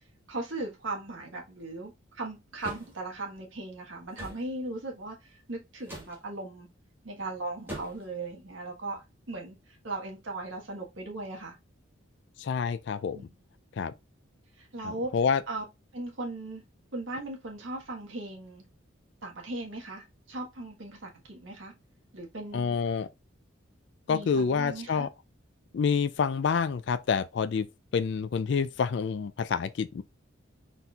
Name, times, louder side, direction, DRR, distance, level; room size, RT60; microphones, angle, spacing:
voice 1, 0.3-5.2 5.5-6.7 7.0-9.5 9.8-11.5 13.1-13.3 14.6-15.1 15.5-15.6 15.9-16.6 16.9-18.6 19.2-21.7 22.1-22.8 24.1-25.1, right 2 dB, 75° right, 1.4 m, -38 dB
sound 1, 2.6-2.9 4.1-4.4 5.8-6.2 7.7-8.1, right 1 dB, 10° right, 1.6 m, -40 dB
voice 2, 12.4-13.2 13.8-13.9 14.8-15.4 22.5-23.1 24.1-25.1 25.7-27.7 27.9-30.0, left 6 dB, 60° left, 0.3 m, -28 dB
4.2 x 4.1 x 2.4 m
head